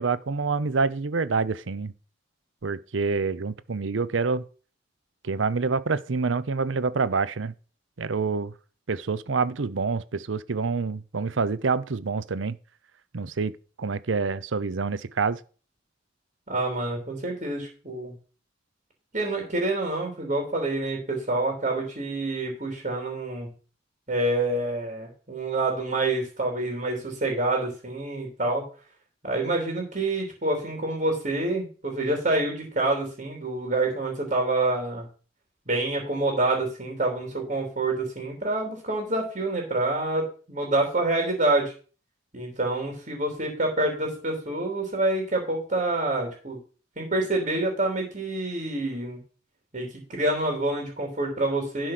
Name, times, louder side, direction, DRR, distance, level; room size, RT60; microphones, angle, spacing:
voice 1, 0.0-1.9 2.6-4.4 5.2-7.5 8.0-8.5 8.9-12.6 13.1-13.5 13.8-15.4, right 4 dB, 80° right, 0.7 m, -27 dB
voice 2, 16.5-18.1 19.1-23.5 24.1-28.6 29.2-35.1 35.7-41.7 42.3-46.6 47.0-49.2 49.7-51.9, right 2 dB, 40° right, 3.3 m, -27 dB
11.5 x 4.8 x 5.9 m
head